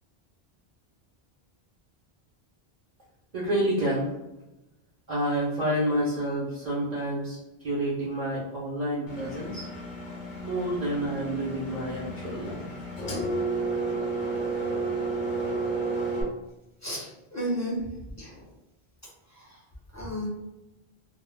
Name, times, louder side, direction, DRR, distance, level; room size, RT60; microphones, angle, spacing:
voice 1, 3.3-4.1 5.1-9.7 10.4-12.6, right 1 dB, 50° right, -6 dB, 0.7 m, -29 dB
Engine, 9.1-16.2, right 2 dB, 55° left, 0.8 m, -32 dB
voice 2, 16.8-18.5 19.3-19.7 19.9-20.3, equal, 20° left, -6 dB, 0.6 m, -34 dB
2.1 x 2.0 x 3.2 m, 0.97 s
omnidirectional pair, 1.0 m